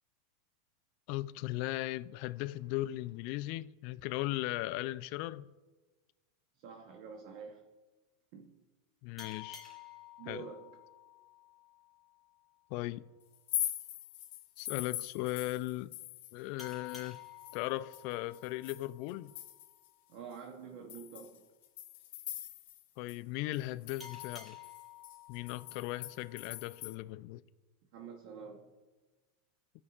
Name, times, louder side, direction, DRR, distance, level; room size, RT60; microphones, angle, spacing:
voice 1, 1.1-5.5 9.0-9.7 10.3-10.4 12.7-13.0 14.6-15.9 16.3-17.2 17.5-19.3 23.0-24.6 25.3-27.4, left 17 dB, 50° left, 0.3 m, -37 dB
voice 2, 6.5-7.7 8.3-8.6 10.2-10.7 20.1-21.5 27.9-28.7, right 5 dB, 55° right, 0.9 m, -47 dB
sound 1, 9.2-12.4 16.6-19.8 24.0-26.9, left 9 dB, 5° left, 1.4 m, -52 dB
sound 2, 13.3-16.4 16.7-19.9 20.3-20.4 20.9-22.8 23.1-23.2 23.5-26.9, left 13 dB, 70° left, 1.2 m, -42 dB
16.0 x 5.4 x 2.4 m
supercardioid pair, 145°, 0 cm